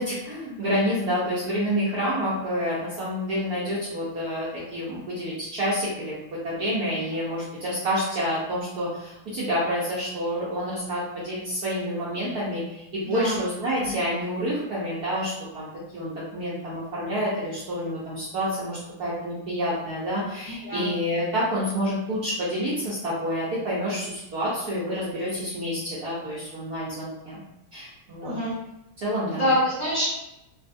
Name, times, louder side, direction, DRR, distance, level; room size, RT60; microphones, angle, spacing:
voice 1, 0.0-6.1 6.4-15.7 15.9-27.4 27.7-28.3 29.0-29.5, equal, 65° right, -8 dB, 0.9 m, -28 dB
voice 2, 13.0-13.4 13.8-14.0 20.4-20.9 28.2-28.5 29.3-30.1, equal, 10° left, -12 dB, 1.0 m, -26 dB
3.2 x 2.3 x 2.5 m, 0.88 s
omnidirectional pair, 2.3 m